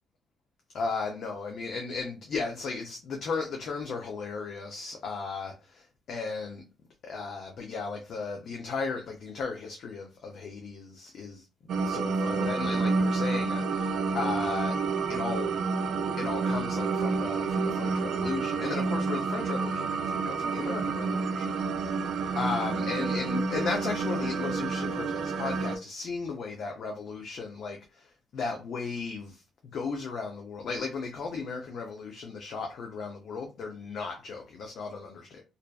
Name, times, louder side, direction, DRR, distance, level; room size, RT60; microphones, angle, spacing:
voice 1, 0.7-6.6 7.0-11.5 11.8-14.8 15.1-15.6 16.2-35.4, left 4 dB, 65° left, 0.5 m, -35 dB
sound 1, 11.7-25.8, right 4 dB, 70° right, 0.3 m, -29 dB
2.5 x 2.2 x 2.3 m
cardioid pair, 90°, 0 cm